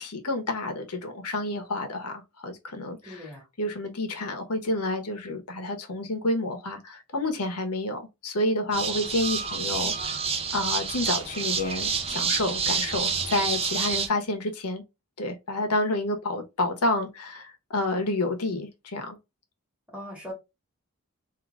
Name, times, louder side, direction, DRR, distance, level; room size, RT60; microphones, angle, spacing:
voice 1, 0.0-3.3 3.6-10.2 10.5-14.8 15.2-19.2, left 2 dB, 85° left, 1.1 m, -29 dB
voice 2, 3.0-3.5 19.9-20.3, equal, 5° right, 2.0 m, -40 dB
sound 1, 8.7-14.1, right 5 dB, 25° right, 0.7 m, -28 dB
3.8 x 2.8 x 3.6 m
head